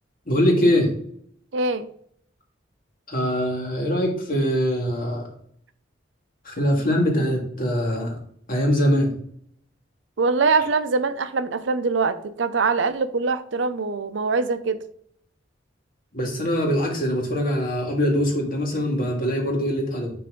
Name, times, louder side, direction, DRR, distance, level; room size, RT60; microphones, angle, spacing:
voice 1, 0.3-0.9 3.1-5.3 6.4-8.2 8.5-9.1 16.1-20.1, equal, 50° left, 0 dB, 1.9 m, -22 dB
voice 2, 1.5-1.9 10.2-14.8, right 4 dB, 75° right, 11 dB, 0.6 m, -23 dB
10.0 x 3.3 x 3.7 m, 0.64 s
head